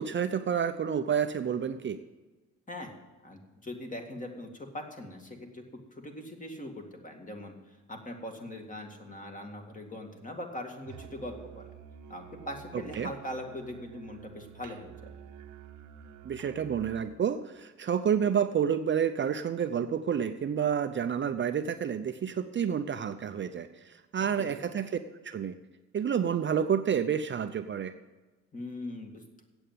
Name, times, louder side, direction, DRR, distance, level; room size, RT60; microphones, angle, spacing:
voice 1, 0.0-2.0 13.0-13.1 16.2-23.7 24.1-24.9 25.2-25.5 25.9-27.9, right 8 dB, 40° right, 8 dB, 0.6 m, -29 dB
voice 2, 3.2-11.7 12.1-15.1 24.2-24.6 28.5-29.2, left 1 dB, 25° left, 3 dB, 2.1 m, -41 dB
Musical instrument, 10.9-17.2, right 8 dB, 80° right, 0.9 m, -49 dB
8.5 x 8.0 x 9.0 m, 1.2 s
cardioid pair, 90°, 30 cm